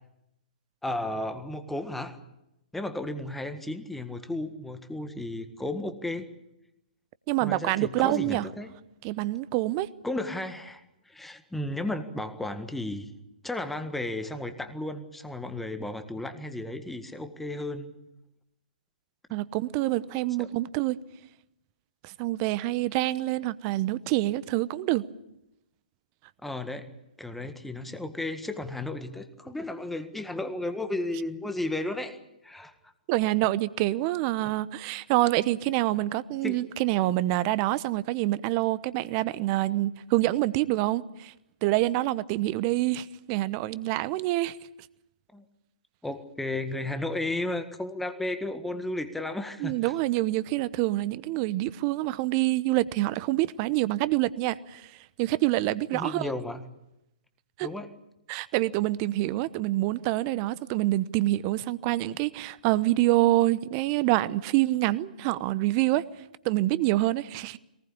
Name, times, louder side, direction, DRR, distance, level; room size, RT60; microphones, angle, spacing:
voice 1, 0.8-2.2 2.7-6.3 7.4-8.7 10.0-13.1 13.4-17.9 20.4-20.5 26.4-26.8 27.2-32.2 32.4-32.7 36.4-36.6 45.3-45.4 46.0-49.9 55.9-56.6 57.6-57.9, left 2 dB, 5° left, 1.7 m, -34 dB
voice 2, 7.3-8.5 9.0-9.9 19.3-21.0 22.0-25.0 33.1-41.3 41.6-44.6 49.6-54.9 55.2-56.3 57.6-57.7 58.3-66.0 66.4-67.6, right 17 dB, 35° right, 0.9 m, -26 dB
22.5 x 19.5 x 8.6 m
figure-of-eight pair, 125°, 4 cm